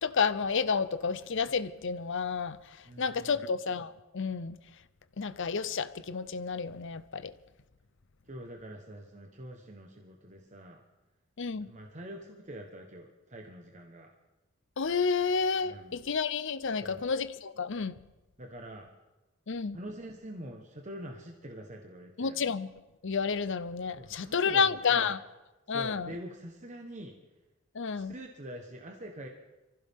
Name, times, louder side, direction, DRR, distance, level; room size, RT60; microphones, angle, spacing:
voice 1, 0.0-2.6 3.0-4.6 5.2-7.3 11.4-11.7 14.8-17.9 19.5-19.8 22.2-22.7 23.0-25.2 25.7-26.1 27.7-28.1, left 5 dB, 65° left, 0.7 m, -30 dB
voice 2, 2.8-3.4 8.2-10.8 11.6-14.1 15.6-16.0 16.7-17.1 18.4-18.9 19.7-22.4 24.0-25.1 25.7-27.1 27.9-29.3, right 1 dB, 35° right, 1.2 m, -45 dB
24.0 x 15.5 x 3.7 m
head